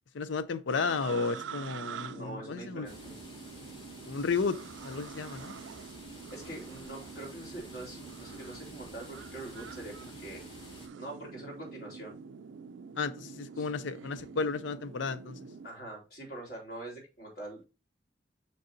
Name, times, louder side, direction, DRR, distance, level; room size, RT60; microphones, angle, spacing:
voice 1, 0.1-2.9 4.1-4.6 4.8-5.5 13.0-15.4, left 4 dB, 80° left, 0.5 m, -33 dB
sound 1, 0.7-15.7, right 6 dB, 85° right, 0.4 m, -46 dB
voice 2, 2.1-3.1 6.3-10.4 11.0-12.2 13.6-13.7 15.6-17.7, right 1 dB, 55° left, 3.9 m, -44 dB
sound 2, 2.8-10.9, left 1 dB, 25° left, 1.9 m, -51 dB
6.7 x 6.6 x 2.7 m
head